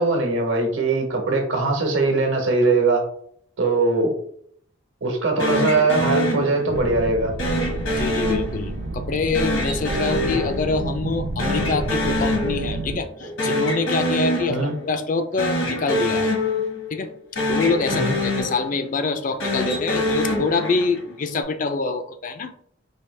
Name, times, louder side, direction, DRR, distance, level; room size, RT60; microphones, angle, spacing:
voice 1, 0.0-3.0 3.6-4.1 5.0-7.3 14.5-14.7 17.9-18.1, right 3 dB, 70° right, 2 dB, 1.1 m, -21 dB
sound 1, 5.4-6.9 7.4-8.9 9.3-11.1 11.4-12.9 13.2-14.9 15.3-17.1 17.4-18.9 19.3-21.1, left 1 dB, 85° left, 1.5 m, -25 dB
sound 2, 6.7-13.0, right 2 dB, 50° right, 0.4 m, -30 dB
voice 2, 7.9-16.3 16.9-17.1 17.5-22.5, left 4 dB, 40° left, 9 dB, 0.4 m, -25 dB
4.7 x 2.8 x 3.2 m, 0.65 s
head